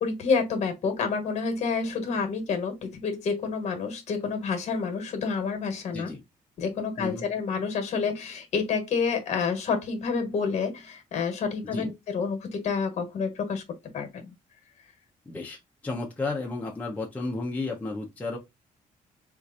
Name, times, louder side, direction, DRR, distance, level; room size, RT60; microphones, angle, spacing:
voice 1, 0.0-6.1 6.6-13.6 13.9-14.3, left 5 dB, 50° left, 1.2 m, -29 dB
voice 2, 5.9-6.2 7.0-7.2 11.6-11.9 15.3-18.4, left 3 dB, 10° left, 0.6 m, -33 dB
4.5 x 2.5 x 2.5 m
cardioid pair, 170°, 15 cm